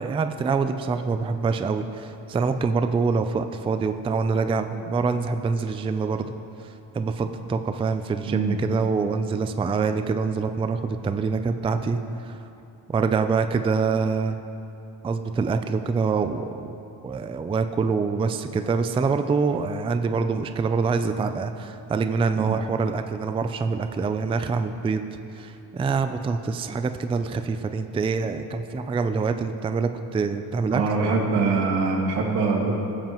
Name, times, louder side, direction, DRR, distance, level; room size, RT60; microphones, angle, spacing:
voice 1, 0.0-6.3 6.6-12.5 12.9-14.4 15.0-16.7 17.0-25.1 25.3-30.8, right 4 dB, 15° right, 8 dB, 0.3 m, -25 dB
voice 2, 8.3-8.6 22.4-22.5 30.7-32.8, right 4 dB, 85° right, 0 dB, 1.8 m, -23 dB
17.0 x 7.5 x 3.0 m, 2.7 s
cardioid pair, 105°, 39 cm